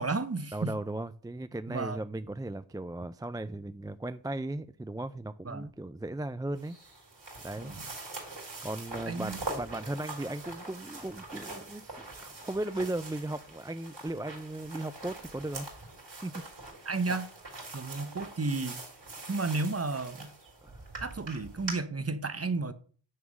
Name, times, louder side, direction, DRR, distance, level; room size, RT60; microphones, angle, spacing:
voice 1, 0.0-0.8 1.7-2.0 5.4-5.7 7.6-7.9 9.1-9.4 16.9-17.3 17.7-18.8 19.3-20.3 21.0-22.7, right 3 dB, 30° right, 0.9 m, -32 dB
voice 2, 0.5-6.8 7.4-7.7 8.6-15.7 16.2-16.4 20.6-20.8, right 2 dB, 10° right, 0.3 m, -37 dB
sound 1, 6.6-21.7, right 2 dB, 65° right, 3.5 m, -43 dB
9.6 x 3.6 x 6.1 m
wide cardioid pair, 55°, 46 cm